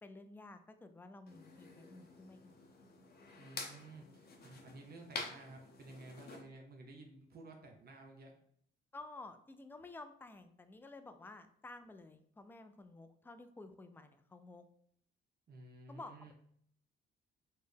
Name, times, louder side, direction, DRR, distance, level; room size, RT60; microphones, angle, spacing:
voice 1, 0.0-2.5 8.9-14.7 15.9-16.3, left 2 dB, 10° left, 9 dB, 0.3 m, -52 dB
sound 1, 1.3-6.4, left 3 dB, 50° left, 0.7 m, -49 dB
voice 2, 3.4-8.3 15.5-16.3, right 2 dB, 50° right, 2 dB, 0.7 m, -54 dB
4.2 x 2.1 x 3.3 m, 0.65 s
cardioid pair, 90°, 20 cm